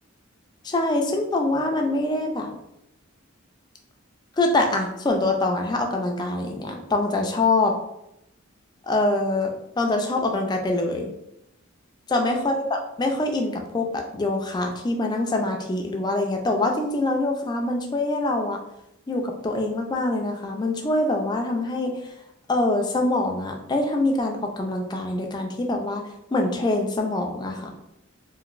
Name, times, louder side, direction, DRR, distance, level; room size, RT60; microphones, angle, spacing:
voice 1, 0.6-2.5 4.4-7.7 8.8-9.5 9.8-11.1 12.1-18.6 19.1-22.0 22.5-26.0 26.3-27.7, left 2 dB, 20° left, 3 dB, 0.3 m, -24 dB
2.9 x 2.5 x 2.4 m, 0.84 s
head